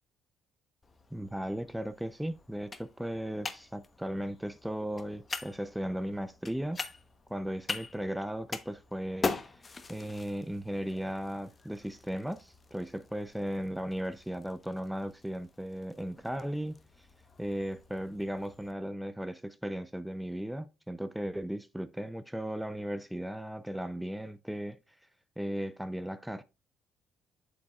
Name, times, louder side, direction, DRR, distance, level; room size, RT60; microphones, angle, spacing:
sound 1, 0.8-18.7, left 4 dB, 30° left, 1.0 m, -43 dB
voice 1, 1.1-6.8 7.3-9.6 9.9-17.1 17.4-24.8 25.4-26.4, equal, 5° right, 0.6 m, -36 dB
7.6 x 6.2 x 2.4 m
hypercardioid pair, 55°, 0 cm